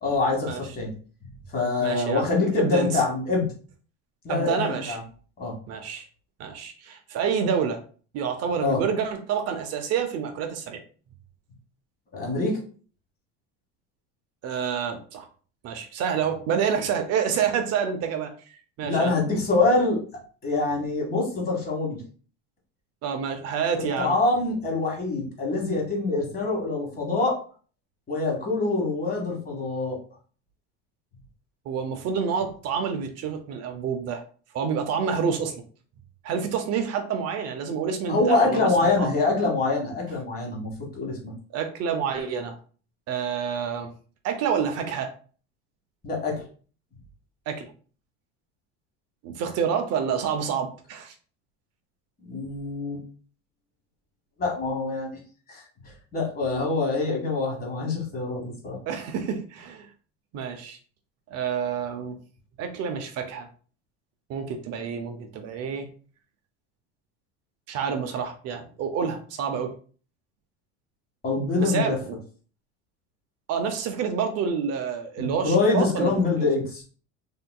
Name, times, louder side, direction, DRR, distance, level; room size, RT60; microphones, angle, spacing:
voice 1, 0.0-0.9 1.2-3.5 4.2-5.0 5.4-5.5 8.6-8.8 12.1-12.6 18.8-20.0 20.4-22.0 24.0-27.4 28.1-30.0 38.1-41.3 46.0-46.4 52.2-53.0 54.4-55.1 55.5-55.6 56.1-58.8 71.2-71.9 75.2-76.8, left 3 dB, 25° left, 0 dB, 1.2 m, -25 dB
voice 2, 1.8-2.3 2.5-3.0 4.3-5.0 5.7-6.1 6.4-7.8 8.1-10.8 14.4-15.3 15.6-19.1 23.0-24.2 31.7-34.2 34.5-35.5 36.2-39.1 41.5-42.6 43.1-43.9 44.2-45.1 47.5-47.7 49.2-51.1 58.9-59.9 60.3-60.8 61.3-62.2 62.6-63.5 64.3-65.9 67.7-69.7 71.6-72.2 73.5-76.5, right 7 dB, 45° right, 6 dB, 0.6 m, -28 dB
3.5 x 2.7 x 2.2 m, 0.41 s
supercardioid pair, 135°, 37 cm